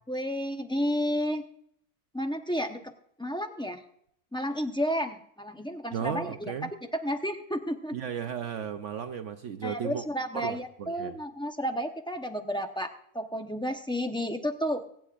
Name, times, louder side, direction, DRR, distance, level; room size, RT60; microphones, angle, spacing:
voice 1, 0.1-1.5 2.1-2.9 3.2-3.8 4.3-6.5 7.0-8.0 9.6-14.8, equal, 5° left, 5 dB, 0.4 m, -31 dB
voice 2, 5.9-6.7 7.9-10.0 10.3-11.2, right 8 dB, 60° right, 8 dB, 0.9 m, -35 dB
24.0 x 9.1 x 2.4 m, 0.70 s
omnidirectional pair, 1.6 m